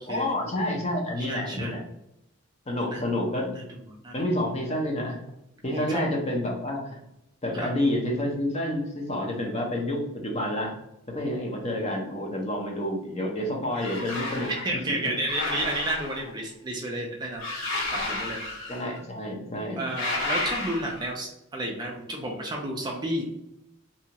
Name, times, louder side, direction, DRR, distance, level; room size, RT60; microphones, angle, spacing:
voice 1, 0.1-1.8 2.7-3.5 4.1-5.2 5.6-7.0 7.4-10.7 11.1-15.0 18.7-19.8, left 1 dB, 30° left, 0 dB, 0.6 m, -29 dB
voice 2, 1.2-1.7 2.8-3.0 3.5-3.6 4.0-4.3 5.6-6.0 7.5-7.7 14.6-17.4 17.9-18.4 19.7-23.2, right 1 dB, 20° right, -1 dB, 0.3 m, -31 dB
sound 1, 13.7-14.7 15.3-16.3 17.4-19.0 19.9-21.1, left 2 dB, 85° left, 1.4 m, -32 dB
2.7 x 2.3 x 2.8 m, 0.84 s
head